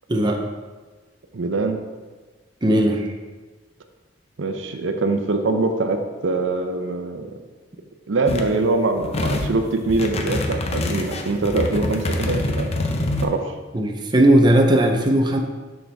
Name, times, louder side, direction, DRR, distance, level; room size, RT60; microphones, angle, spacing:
voice 1, 0.1-0.4 2.6-3.1 13.7-15.4, right 1 dB, 25° right, 2 dB, 0.6 m, -17 dB
voice 2, 1.3-1.8 4.4-7.3 8.1-12.7 13.2-13.5, right 3 dB, 90° right, 6 dB, 0.6 m, -23 dB
sound 1, 8.3-8.5 9.0-9.5 9.9-13.2, left 2 dB, 35° left, 0.6 m, -25 dB
6.3 x 6.1 x 3.4 m, 1.3 s
head